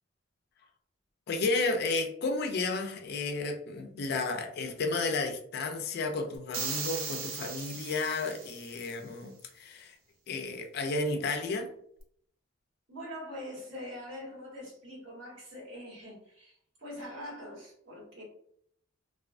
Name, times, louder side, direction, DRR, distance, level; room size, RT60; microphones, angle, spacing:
voice 1, 1.3-9.9 10.3-11.7, left 3 dB, 55° left, 5 dB, 0.4 m, -32 dB
sound 1, 6.5-8.8, right 5 dB, 85° right, 0.5 m, -37 dB
voice 2, 12.9-18.2, left 1 dB, 65° right, -4 dB, 1.3 m, -43 dB
2.3 x 2.2 x 2.4 m, 0.66 s
head